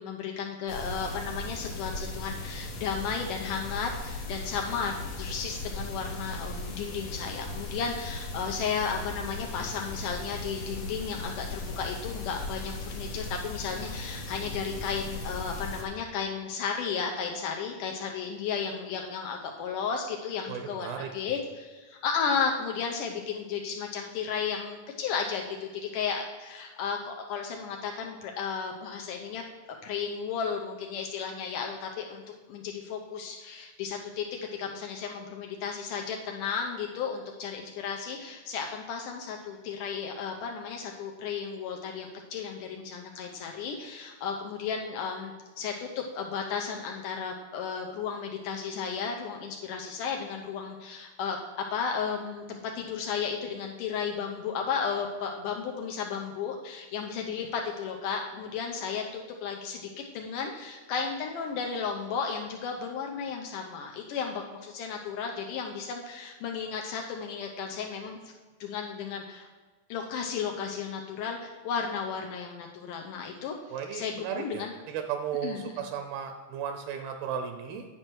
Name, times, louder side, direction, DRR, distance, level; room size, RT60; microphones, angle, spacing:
voice 1, 0.0-29.4 29.8-32.2 32.5-34.3 34.6-51.4 51.7-68.2 68.6-69.5 69.9-73.6 73.9-74.8 75.4-75.8, left 6 dB, 75° left, 2 dB, 2.0 m, -34 dB
sound 1, 0.7-15.8, left 2 dB, 60° left, 1.9 m, -38 dB
voice 2, 20.5-21.1 73.7-77.9, right 8 dB, 80° right, 5 dB, 2.5 m, -35 dB
10.0 x 6.1 x 4.6 m, 1.3 s
omnidirectional pair, 4.4 m